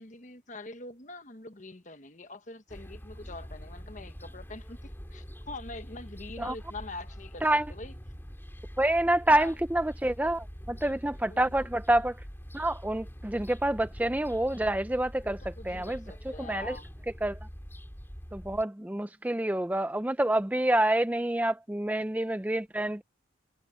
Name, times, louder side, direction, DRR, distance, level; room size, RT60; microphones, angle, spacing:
voice 1, 0.0-7.9 9.3-9.5 11.3-11.7 15.2-16.9, left 2 dB, 40° left, 1.2 m, -44 dB
sound 1, 2.7-18.6, equal, 10° left, 4.5 m, -44 dB
voice 2, 8.8-12.2 12.5-16.0 16.4-16.8 17.2-17.4 18.3-23.0, right 1 dB, 10° right, 0.4 m, -27 dB
head